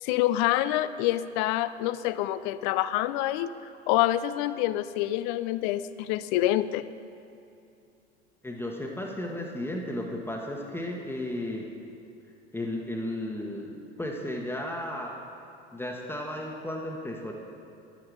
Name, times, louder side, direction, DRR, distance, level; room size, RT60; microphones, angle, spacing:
voice 1, 0.0-3.5 3.9-6.8, left 14 dB, 50° left, 15 dB, 0.5 m, -26 dB
voice 2, 8.4-11.7 12.5-15.2 15.7-17.3, left 1 dB, 5° left, 0 dB, 1.3 m, -34 dB
11.0 x 9.4 x 4.9 m, 2.6 s
figure-of-eight pair, 75°, 32 cm